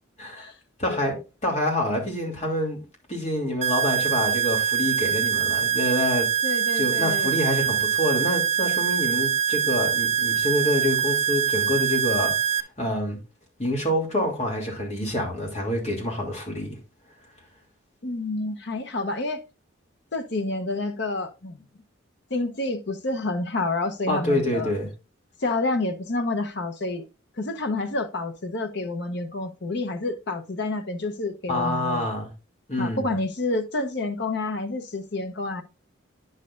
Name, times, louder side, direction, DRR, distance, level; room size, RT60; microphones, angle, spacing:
voice 1, 0.2-0.5 0.8-1.1 1.4-2.8 3.1-6.3 6.7-13.2 13.6-16.8 24.1-24.9 31.5-32.3 32.7-33.1, left 1 dB, 35° left, 2.7 m, -27 dB
voice 2, 0.9-1.2 6.4-7.4 18.0-19.4 20.1-21.6 22.3-24.7 25.4-27.0 27.4-32.1 32.8-35.6, left 2 dB, 55° left, 0.9 m, -29 dB
sound 1, 3.6-12.6, right 8 dB, 35° right, 0.3 m, -24 dB
9.7 x 6.5 x 2.5 m
head